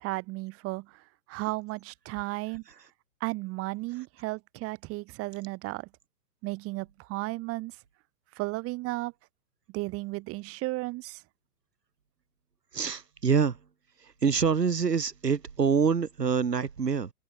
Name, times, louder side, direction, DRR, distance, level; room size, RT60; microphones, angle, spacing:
voice 1, 0.0-2.6 3.2-5.9 6.4-7.8 8.3-9.1 9.7-11.2, right 22 dB, 30° right, 5.7 m, -34 dB
voice 2, 12.7-13.6 14.0-17.1, right 6 dB, 85° right, 4.2 m, -26 dB
open air
hypercardioid pair, 130°, 47 cm